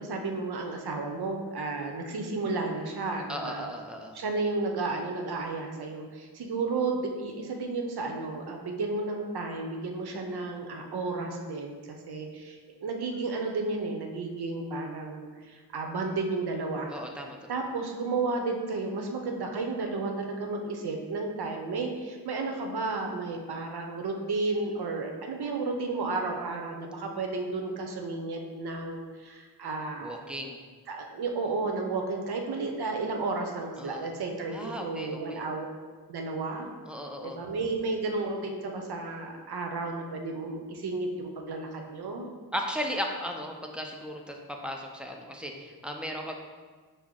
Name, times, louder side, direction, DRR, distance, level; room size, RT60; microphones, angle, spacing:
voice 1, 0.0-3.7 4.1-17.0 17.5-30.2 30.9-35.7 36.1-36.7 37.2-42.3, right 3 dB, 65° right, 3 dB, 0.7 m, -32 dB
voice 2, 3.3-4.1 16.9-17.4 30.0-30.6 33.8-34.1 34.5-35.4 36.9-37.4 42.5-46.4, equal, 5° right, 1 dB, 0.5 m, -36 dB
5.6 x 2.0 x 3.7 m, 1.5 s
cardioid pair, 65°, 41 cm